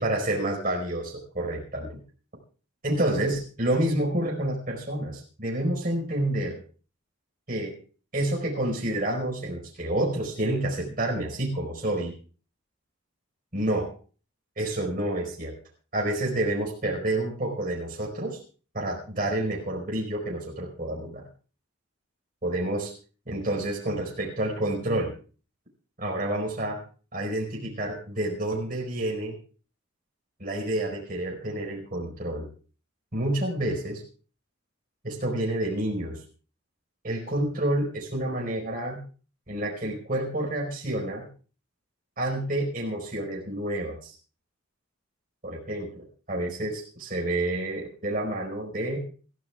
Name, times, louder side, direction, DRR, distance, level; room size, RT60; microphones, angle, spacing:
voice 1, 0.0-2.0 2.8-6.6 7.5-7.8 8.1-12.1 13.5-13.9 14.6-15.5 15.9-18.4 18.7-21.2 22.4-22.9 23.3-25.1 26.0-26.8 27.1-29.3 30.4-32.5 33.1-34.0 35.0-36.2 37.0-39.0 39.5-41.3 42.2-44.1 45.4-49.0, right 1 dB, 45° right, -1 dB, 4.8 m, -29 dB
27.5 x 14.0 x 2.4 m, 0.38 s
head